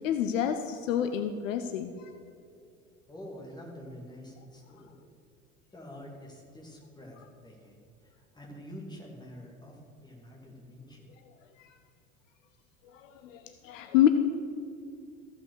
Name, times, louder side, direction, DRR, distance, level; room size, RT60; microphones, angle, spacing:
voice 1, 0.0-1.9 12.9-14.1, left 10 dB, 65° left, 8 dB, 0.7 m, -27 dB
voice 2, 3.1-4.9 5.7-11.1, equal, 10° left, -1 dB, 2.5 m, -47 dB
14.5 x 5.7 x 6.4 m, 2.6 s
figure-of-eight pair, 70°, 42 cm